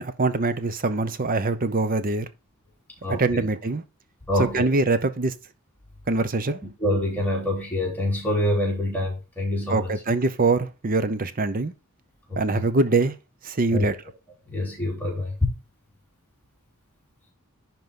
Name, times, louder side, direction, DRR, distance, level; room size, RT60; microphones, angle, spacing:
voice 1, 0.0-2.3 3.1-3.8 4.4-5.3 6.1-6.6 9.7-11.7 12.4-13.1 13.4-14.0, right 3 dB, 40° right, 0.7 m, -23 dB
voice 2, 3.0-3.5 4.3-4.7 6.8-9.9 12.3-12.6 13.7-13.8 14.5-15.4, left 1 dB, 10° left, 3.5 m, -26 dB
11.0 x 4.6 x 3.8 m
head